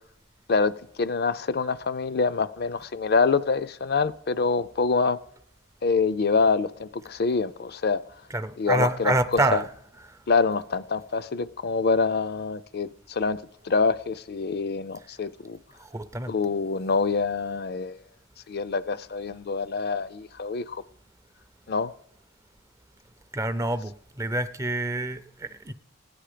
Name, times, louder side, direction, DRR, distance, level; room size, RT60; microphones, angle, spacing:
voice 1, 0.5-5.2 5.8-8.0 8.6-9.6 10.3-15.6 16.3-18.0 18.5-20.8 21.7-21.9, left 4 dB, 50° left, 0.4 m, -26 dB
voice 2, 8.3-9.7 15.9-16.3 23.3-25.7, right 2 dB, 15° right, 0.5 m, -27 dB
16.5 x 10.0 x 5.0 m
head